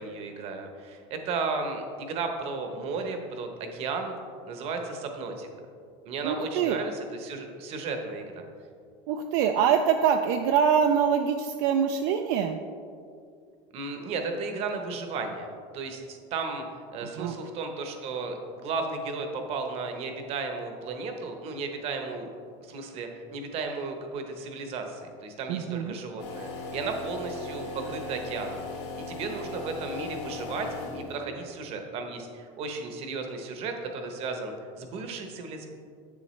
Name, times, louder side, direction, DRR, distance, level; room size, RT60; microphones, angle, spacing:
voice 1, 0.0-4.1 4.5-5.5 6.0-8.4 13.7-15.5 15.7-16.6 16.9-22.3 22.6-28.7 29.0-35.7, right 4 dB, 40° right, 5 dB, 0.9 m, -34 dB
voice 2, 6.2-6.8 9.1-12.6 17.2-17.3 25.5-25.9, right 7 dB, 65° right, 5 dB, 0.4 m, -24 dB
sound 1, 26.2-31.4, left 3 dB, 85° left, 1.9 m, -38 dB
7.7 x 7.1 x 3.2 m, 2.2 s
cardioid pair, 160°, 15 cm